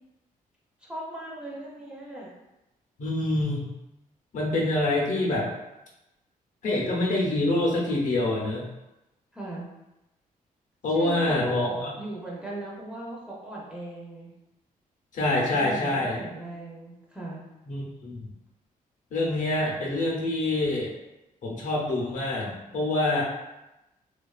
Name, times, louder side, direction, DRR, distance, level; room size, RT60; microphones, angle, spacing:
voice 1, 0.8-2.3 9.3-9.7 10.9-14.3 15.5-17.4, right 1 dB, 5° right, -5 dB, 0.6 m, -38 dB
voice 2, 3.0-3.7 4.3-5.5 6.6-8.7 10.8-11.9 15.1-16.2 17.7-18.3 19.1-20.9 21.4-23.2, left 2 dB, 60° left, -2 dB, 0.6 m, -26 dB
2.4 x 2.2 x 2.3 m, 0.95 s
cardioid pair, 120°, 15 cm